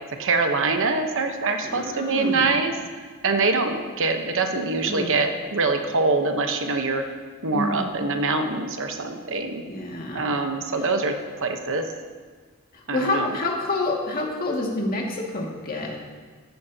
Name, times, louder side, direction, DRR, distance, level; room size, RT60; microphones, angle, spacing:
voice 1, 0.2-2.7 3.2-7.0 7.4-9.6 10.1-11.9 12.9-13.3, right 3 dB, 60° right, 5 dB, 1.0 m, -24 dB
voice 2, 1.6-2.5 4.8-5.1 7.5-7.9 9.7-10.4 12.7-16.0, left 2 dB, 40° left, -2 dB, 2.1 m, -28 dB
14.0 x 13.5 x 2.9 m, 1.5 s
head